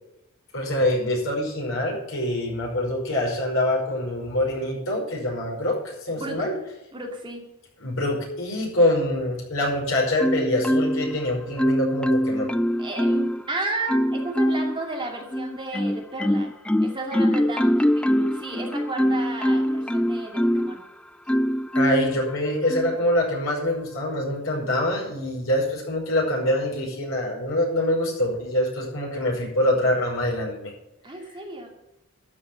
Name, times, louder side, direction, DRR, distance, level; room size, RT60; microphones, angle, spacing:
voice 1, 0.5-6.5 7.8-12.5 21.7-30.7, left 1 dB, 70° left, -2 dB, 5.4 m, -25 dB
voice 2, 6.2-6.5 6.9-7.4 12.8-16.5 16.8-20.8 31.0-31.7, right 2 dB, 25° right, 0 dB, 2.5 m, -33 dB
Marimba xylophone, 10.2-11.2 11.6-13.4 13.9-14.8 15.3-20.8 21.3-22.2 22.7-23.0, equal, 5° left, 0.3 m, -23 dB
12.5 x 6.5 x 7.0 m, 0.92 s
head